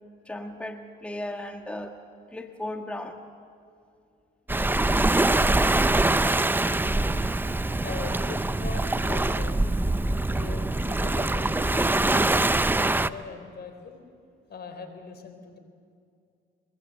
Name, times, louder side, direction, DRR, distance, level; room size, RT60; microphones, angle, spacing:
voice 1, 0.2-1.9 2.3-3.2, left 1 dB, 5° left, 4 dB, 1.5 m, -36 dB
Waves surf, 4.5-13.1, right 2 dB, 10° right, 0.6 m, -24 dB
voice 2, 7.3-9.6 10.3-14.0 14.5-15.6, left 4 dB, 55° left, 7 dB, 3.9 m, -41 dB
23.5 x 22.0 x 7.8 m, 2.4 s
cardioid pair, 90°, 20 cm